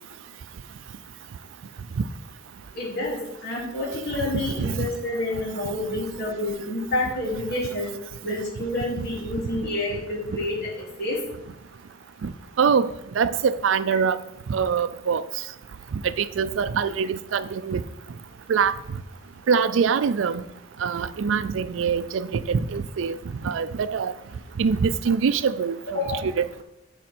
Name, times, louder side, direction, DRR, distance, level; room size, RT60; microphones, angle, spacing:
voice 1, 2.7-7.9 8.2-11.2 25.9-26.2, left 1 dB, 55° left, 2.8 m, -28 dB
voice 2, 4.3-4.8 12.2-12.3 12.6-14.2 14.5-15.2 15.9-17.8 18.5-18.8 19.5-20.4 20.8-23.2 23.4-24.1 24.6-26.6, right 6 dB, 85° right, 0.4 m, -24 dB
7.4 x 5.1 x 4.4 m
head